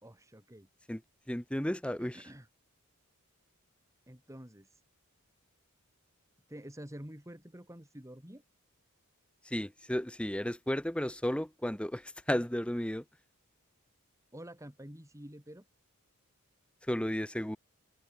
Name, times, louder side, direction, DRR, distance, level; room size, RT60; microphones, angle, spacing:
voice 1, 0.0-0.7 2.0-2.5 4.1-4.8 6.5-8.4 14.3-15.6, equal, 15° right, 4.1 m, -48 dB
voice 2, 1.3-2.2 9.4-13.0 16.9-17.6, equal, 5° left, 0.9 m, -33 dB
open air
head